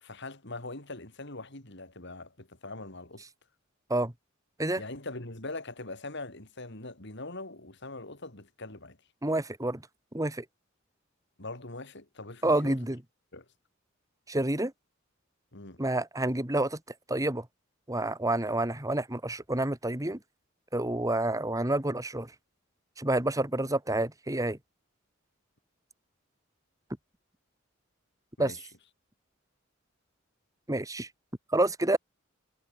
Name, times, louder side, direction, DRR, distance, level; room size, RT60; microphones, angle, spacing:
voice 1, 0.0-3.2 4.7-9.0 11.4-12.8 13.3-13.5 15.5-15.8 28.4-28.7, left 2 dB, 60° left, 4.8 m, -42 dB
voice 2, 9.2-9.8 10.1-10.4 12.4-13.0 14.3-14.7 15.8-16.8 17.1-17.5 17.9-20.2 20.7-22.3 23.0-24.6 28.4-28.5 30.7-31.1 31.5-32.0, right 1 dB, 15° right, 2.2 m, -28 dB
head